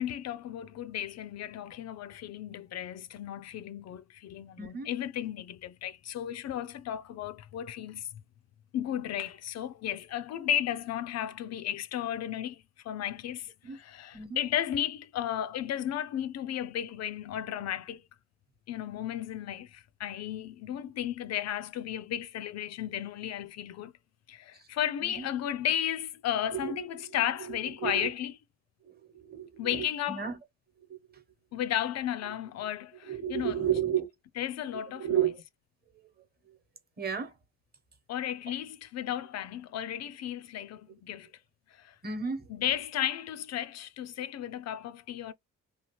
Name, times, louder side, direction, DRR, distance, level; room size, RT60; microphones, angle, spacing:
voice 1, 0.0-8.1 8.7-18.0 18.7-23.9 24.3-28.3 29.6-30.2 31.5-33.6 34.4-35.1 38.1-41.3 41.7-42.0 42.5-45.3, left 11 dB, 60° left, 0.4 m, -34 dB
voice 2, 4.6-4.9 13.6-13.8 14.1-14.4 24.5-24.6 25.0-25.3 26.5-28.1 28.8-30.3 30.9-31.2 33.0-34.1 34.9-35.4 37.0-37.3 42.0-42.5, right 9 dB, 30° right, 1.0 m, -33 dB
2.8 x 2.3 x 3.0 m
cardioid pair, 90°, 30 cm